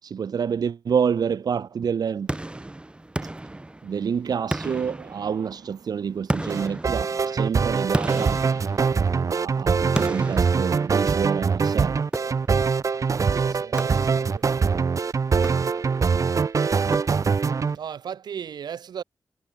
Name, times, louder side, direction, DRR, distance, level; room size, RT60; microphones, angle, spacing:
voice 1, 0.0-2.3 3.2-3.3 3.8-8.4 9.3-12.0, right 7 dB, 70° right, 4.2 m, -28 dB
sound 1, 2.3-4.1 4.5-5.7 6.3-9.3 9.9-11.4 12.1-12.8 13.8-14.5 15.3-16.1 16.9-17.6, right 1 dB, 15° right, 5.0 m, -33 dB
sound 2, 6.5-17.8, right 5 dB, 50° right, 3.8 m, -23 dB
voice 2, 13.1-15.1 17.7-19.0, right 8 dB, 90° right, 7.4 m, -37 dB
wide cardioid pair, 110°, 7 cm